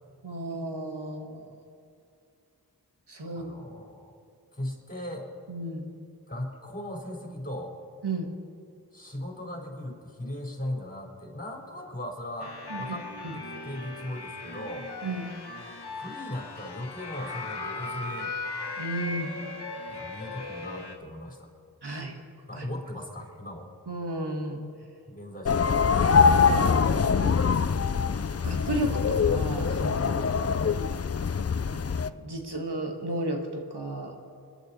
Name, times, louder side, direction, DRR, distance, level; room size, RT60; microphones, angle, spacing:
voice 1, 0.2-1.4 3.1-3.5 5.5-5.9 8.0-8.3 12.7-12.8 13.2-13.3 15.0-15.3 18.8-19.3 21.8-22.2 22.6-22.7 23.9-24.6 26.3-27.4 28.4-30.3 31.6-34.2, right 1 dB, 85° right, 2 dB, 1.7 m, -33 dB
voice 2, 3.3-4.1 4.5-5.3 6.3-7.8 8.9-13.1 13.3-14.9 15.9-18.3 19.9-21.5 22.5-23.7 25.1-26.0, left 1 dB, 20° left, -2 dB, 4.2 m, -38 dB
sound 1, 12.4-21.0, left 3 dB, 80° left, 1.4 m, -38 dB
sound 2, 25.5-32.1, left 6 dB, 40° left, 0.5 m, -24 dB
28.5 x 11.0 x 4.3 m, 2.4 s
wide cardioid pair, 45°, 39 cm